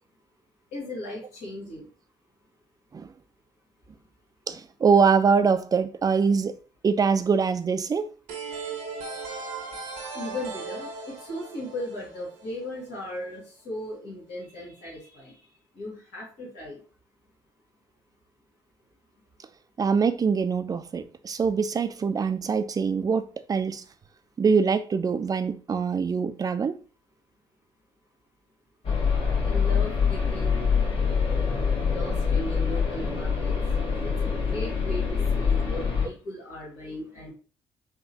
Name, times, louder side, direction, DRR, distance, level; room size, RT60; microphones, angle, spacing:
voice 1, 0.7-1.9 10.1-15.3 15.7-16.8 29.4-30.8 31.8-33.6 34.0-37.3, left 1 dB, 75° left, 1.6 m, -37 dB
voice 2, 4.5-6.6 6.8-8.1 19.8-23.8 24.4-26.8, right 5 dB, 30° right, 0.3 m, -24 dB
sound 1, 8.3-12.9, right 4 dB, 70° right, 0.7 m, -37 dB
sound 2, 28.8-36.1, left 6 dB, 45° left, 1.3 m, -25 dB
3.6 x 2.4 x 2.7 m
hypercardioid pair, 45°, 12 cm